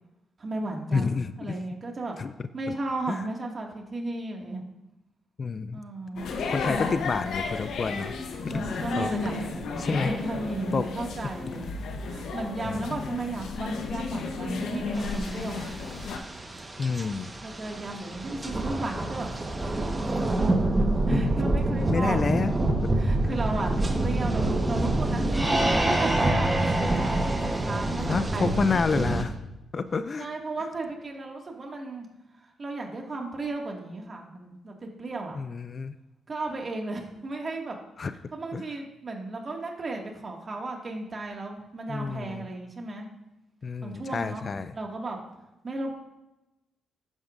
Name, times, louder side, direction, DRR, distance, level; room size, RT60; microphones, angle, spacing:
voice 1, 0.4-2.2 2.5-4.6 5.7-6.3 8.5-11.7 12.0-15.7 17.4-19.3 19.7-20.5 21.1-22.4 22.9-27.2 27.6-28.6 30.2-32.1 32.4-35.4 36.3-37.8 38.3-43.1 43.8-44.5 44.7-45.2 45.6-45.9, right 2 dB, 40° right, 1 dB, 2.0 m, -34 dB
voice 2, 0.9-1.6 2.2-2.3 3.1-3.2 5.4-5.8 6.2-8.1 8.4-8.6 9.0-9.1 9.8-10.1 10.7-10.9 12.6-12.9 16.8-17.3 21.1-21.4 21.9-22.5 22.8-22.9 23.2-23.3 28.0-29.4 29.7-30.3 35.3-36.0 38.0-38.1 38.5-38.6 41.9-42.4 43.6-44.7, left 4 dB, 45° left, 13 dB, 0.4 m, -29 dB
sound 1, 6.2-16.2, left 4 dB, 75° left, 1.0 m, -33 dB
sound 2, 14.9-29.2, right 2 dB, 25° right, 1.3 m, -27 dB
sound 3, 25.3-28.9, right 1 dB, 10° right, 3.0 m, -28 dB
11.5 x 8.6 x 2.6 m, 0.97 s
supercardioid pair, 65°, 0 cm